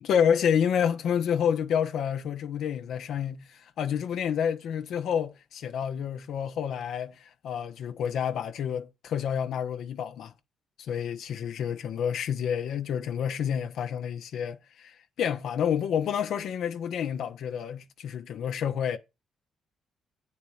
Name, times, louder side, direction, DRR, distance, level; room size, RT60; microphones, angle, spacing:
voice 1, 0.0-10.3 10.8-19.0, left 8 dB, 75° left, 0.8 m, -29 dB
8.5 x 4.3 x 7.1 m
cardioid pair, 90°, 0 cm